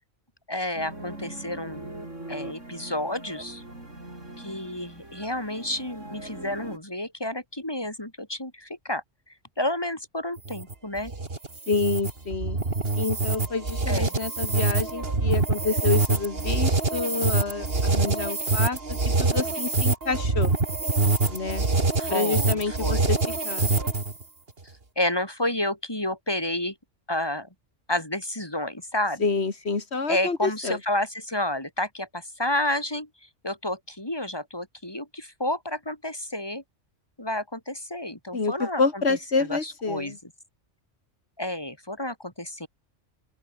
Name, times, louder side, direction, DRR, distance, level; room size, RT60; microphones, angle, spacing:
voice 1, 0.5-1.9 2.3-3.6 4.4-9.0 9.6-11.1 13.9-14.1 22.0-23.1 25.0-26.7 27.1-27.5 27.9-29.2 30.1-33.1 33.4-36.6 37.2-38.8 39.1-40.2 41.4-42.7, left 1 dB, 20° left, 4.1 m, -30 dB
sound 1, 0.7-6.8, right 1 dB, 90° right, 8.0 m, -41 dB
sound 2, 10.4-24.2, right 3 dB, 50° right, 3.0 m, -25 dB
voice 2, 11.7-12.6 13.0-20.5 21.3-21.7 22.1-23.2 23.4-23.7 29.2-30.8 38.3-40.2, left 4 dB, 60° left, 2.5 m, -28 dB
open air
omnidirectional pair, 1.2 m